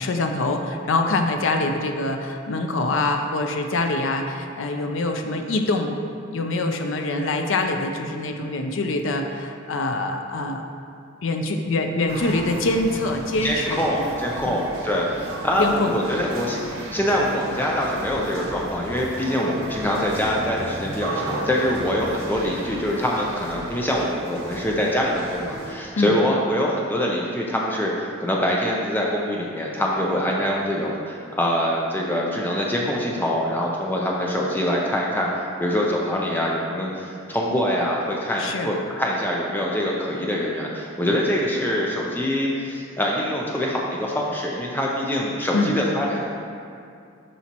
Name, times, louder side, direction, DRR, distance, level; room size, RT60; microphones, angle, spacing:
voice 1, 0.0-5.9 6.3-10.7 11.2-13.8 14.4-14.6 15.6-16.0 26.0-26.2 38.4-38.7 45.5-45.7, left 2 dB, 70° left, 4 dB, 0.5 m, -24 dB
sound 1, 12.1-25.7, right 1 dB, 90° right, 1.1 m, -34 dB
voice 2, 13.4-35.3 35.6-46.4, equal, 10° left, -3 dB, 0.5 m, -24 dB
12.0 x 4.2 x 2.9 m, 2.5 s
head